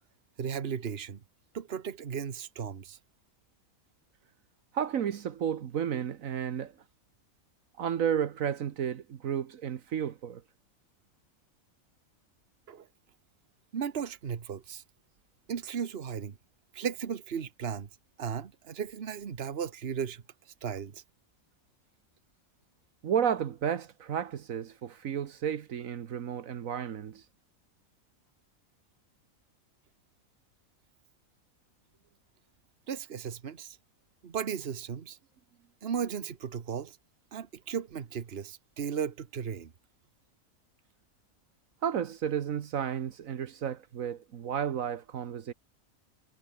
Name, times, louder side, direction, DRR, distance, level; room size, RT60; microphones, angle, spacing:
voice 1, 0.4-1.2 1.5-3.0 12.7-12.9 13.7-14.8 15.5-16.4 16.7-17.9 18.2-20.2 20.6-21.0 32.9-33.8 34.2-35.2 35.8-37.0 37.3-39.7, right 7 dB, 45° right, 1.4 m, -35 dB
voice 2, 4.7-6.7 7.8-10.4 23.0-27.2 41.8-45.5, right 8 dB, 75° right, 1.4 m, -32 dB
omnidirectional pair, 1.4 m